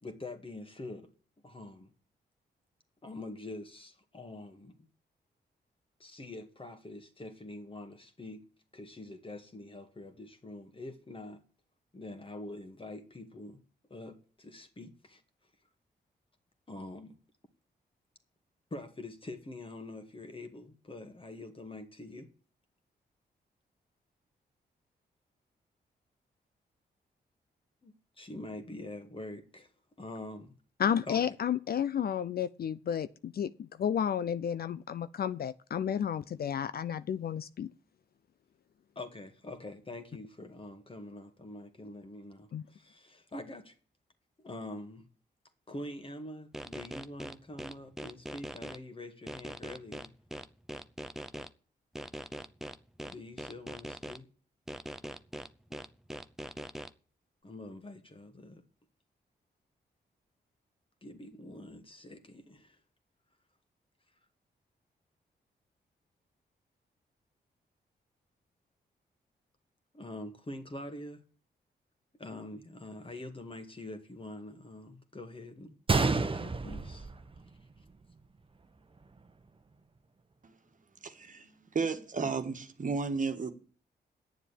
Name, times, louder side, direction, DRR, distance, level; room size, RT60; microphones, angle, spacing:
voice 1, 0.0-1.1 1.4-1.9 3.0-4.7 6.0-8.4 8.7-11.4 11.9-13.6 13.9-15.2 16.7-17.2 18.7-22.3 27.8-29.7 30.0-30.5 31.1-31.4 39.0-43.7 44.4-45.0 45.7-50.1 53.1-54.3 57.4-58.6 61.0-62.8 69.9-71.2 72.2-77.1, left 2 dB, 30° left, 2.0 m, -45 dB
voice 2, 30.8-37.7 42.5-42.6, left 8 dB, 60° left, 0.5 m, -32 dB
sound 1, 46.5-48.8 49.3-51.5 52.0-54.2 54.7-56.9, equal, ahead, 0.7 m, -41 dB
Gunshot gunfire, 75.9-77.9 78.2-78.3 79.0-79.2, right 3 dB, 30° right, 1.0 m, -30 dB
voice 3, 81.0-83.5, right 4 dB, 45° right, 1.5 m, -33 dB
9.4 x 7.2 x 8.5 m
cardioid pair, 65°, 18 cm